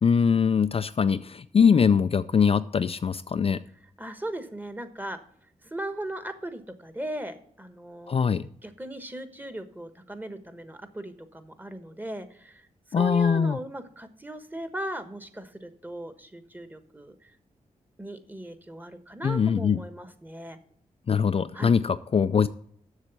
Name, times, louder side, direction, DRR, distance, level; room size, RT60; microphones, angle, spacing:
voice 1, 0.0-3.6 8.1-8.4 12.9-13.6 19.2-19.8 21.1-22.5, left 6 dB, 45° left, 11 dB, 0.4 m, -22 dB
voice 2, 4.0-5.2 5.7-8.1 8.6-12.7 13.0-17.1 18.0-20.6 21.5-21.7, right 1 dB, 15° right, 9 dB, 1.2 m, -37 dB
7.5 x 6.5 x 8.0 m, 0.62 s
cardioid pair, 75°, 14 cm